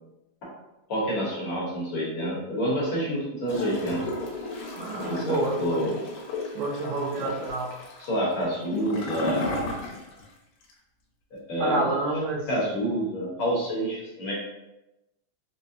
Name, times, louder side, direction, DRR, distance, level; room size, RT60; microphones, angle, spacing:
voice 1, 0.9-4.0 5.0-6.0 7.2-7.4 8.0-9.5 11.5-11.9 12.5-14.3, equal, 60° left, -6 dB, 1.5 m, -28 dB
Gurgling / Toilet flush, 3.5-10.3 10.6-10.7, left 2 dB, 85° left, 2.0 m, -34 dB
voice 2, 4.8-5.8 6.6-7.7 11.6-12.5, right 2 dB, 80° right, 0 dB, 1.9 m, -28 dB
4.9 x 2.1 x 2.7 m, 0.95 s
omnidirectional pair, 3.3 m